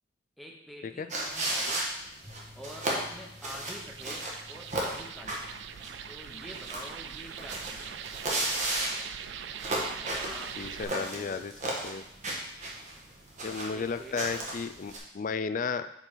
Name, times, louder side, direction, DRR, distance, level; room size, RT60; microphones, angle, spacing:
voice 1, 0.4-1.9 2.6-5.5 6.1-8.0 10.0-11.5 13.4-14.2, equal, ahead, 0 dB, 0.9 m, -47 dB
sound 1, 1.1-15.0, right 1 dB, 45° right, 1.3 m, -35 dB
Bass guitar, 2.2-8.5, left 2 dB, 20° right, 1.8 m, -56 dB
sound 2, 3.8-10.8, right 8 dB, 90° right, 0.4 m, -42 dB
voice 2, 10.6-11.5 11.8-12.0 13.4-15.9, left 5 dB, 45° left, 11 dB, 0.4 m, -33 dB
5.2 x 4.6 x 5.7 m, 0.80 s
head